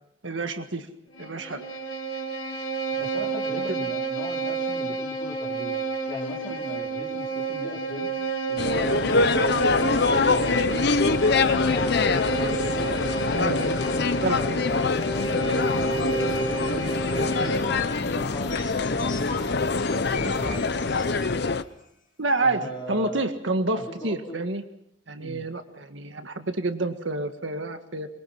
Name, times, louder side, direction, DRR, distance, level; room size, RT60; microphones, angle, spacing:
voice 1, 0.2-0.9 1.2-1.6 13.3-13.8 14.2-14.4 22.2-24.6 25.1-28.1, right 2 dB, 75° right, 7 dB, 1.7 m, -28 dB
Bowed string instrument, 1.1-17.7, right 4 dB, 90° left, 3.8 m, -30 dB
voice 2, 3.0-5.8 6.1-8.1 8.5-13.0 13.6-15.2 15.8-20.8 22.4-23.2 23.7-24.5 25.2-25.4, equal, 25° left, -2 dB, 4.4 m, -39 dB
sound 1, 8.6-21.6, left 4 dB, 60° left, 0.8 m, -24 dB
sound 2, 14.3-21.5, left 1 dB, 40° left, 3.5 m, -34 dB
23.5 x 22.5 x 5.9 m, 0.77 s
head